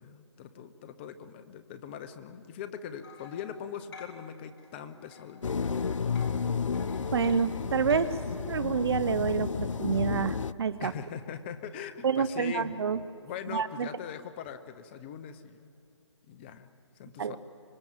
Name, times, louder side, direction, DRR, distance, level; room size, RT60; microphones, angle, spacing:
voice 1, 0.0-5.9 10.8-12.7 13.2-15.7 16.3-16.7 17.0-17.4, left 8 dB, 20° left, 10 dB, 0.8 m, -41 dB
sound 1, 3.0-4.8 5.1-8.2, left 5 dB, 45° left, 4.2 m, -51 dB
sound 2, 5.4-10.5, left 5 dB, 90° left, 0.6 m, -32 dB
voice 2, 7.1-8.1 8.4-10.9 12.0-13.0 13.5-13.9 17.2-17.4, right 6 dB, 55° right, 15 dB, 1.0 m, -28 dB
25.0 x 21.5 x 7.5 m, 2.7 s
hypercardioid pair, 160°, 16 cm